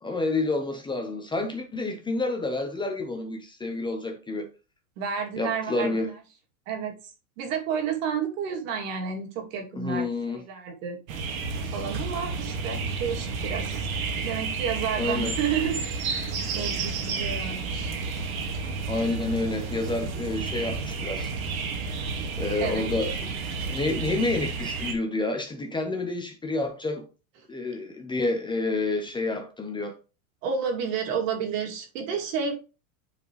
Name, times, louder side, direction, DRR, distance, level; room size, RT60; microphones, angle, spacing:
voice 1, 0.0-4.5 5.4-6.1 9.7-10.4 15.0-15.4 18.9-21.3 21.8-21.9 22.4-23.3 23.7-27.1 27.5-29.9, left 2 dB, 10° left, 0.9 m, -29 dB
voice 2, 5.0-6.0 6.7-6.9 7.4-11.0 11.7-13.9 14.2-15.8 16.1-17.9 22.6-22.8 30.4-32.5, right 7 dB, 65° right, 2.5 m, -31 dB
sound 1, 11.1-24.9, right 4 dB, 85° right, 1.9 m, -31 dB
9.4 x 4.7 x 3.1 m
supercardioid pair, 135°, 41 cm